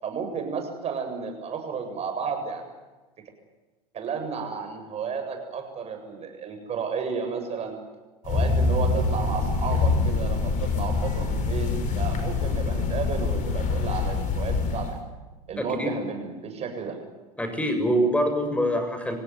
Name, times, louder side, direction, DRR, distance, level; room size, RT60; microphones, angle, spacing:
voice 1, 0.0-2.7 3.9-7.8 8.2-15.0 15.5-17.0, right 5 dB, 30° right, 5 dB, 7.8 m, -32 dB
sound 1, 8.2-15.0, left 4 dB, 40° left, 6.1 m, -25 dB
voice 2, 15.6-15.9 17.4-19.2, equal, 5° left, 6 dB, 7.2 m, -24 dB
27.5 x 17.5 x 9.6 m, 1.2 s
hypercardioid pair, 85°, 20 cm